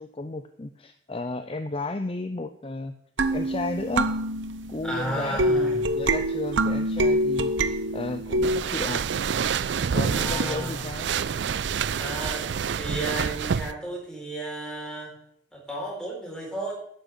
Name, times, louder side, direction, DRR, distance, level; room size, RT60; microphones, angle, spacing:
voice 1, 0.0-2.9 3.3-4.1 4.7-9.0 9.9-11.1, left 2 dB, 30° left, 8 dB, 0.6 m, -33 dB
sound 1, 3.2-8.6, right 1 dB, 85° right, 0.9 m, -25 dB
voice 2, 4.8-5.8 10.1-10.8 12.0-12.5 12.7-15.1 15.5-16.7, right 1 dB, 5° left, -2 dB, 4.1 m, -33 dB
sound 2, 8.4-13.7, right 7 dB, 70° right, 0.4 m, -27 dB
12.0 x 6.2 x 8.2 m, 0.66 s
head